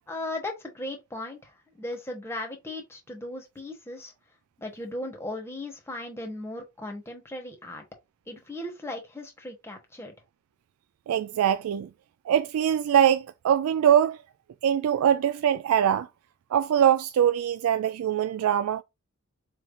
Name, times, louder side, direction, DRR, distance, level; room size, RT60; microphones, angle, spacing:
voice 1, 0.1-4.1 4.6-7.8 8.3-10.1, left 1 dB, 10° left, 1.0 m, -37 dB
voice 2, 11.1-11.9 12.3-14.2 14.6-16.1 16.5-18.8, right 9 dB, 85° right, 0.3 m, -23 dB
4.2 x 3.3 x 2.5 m
head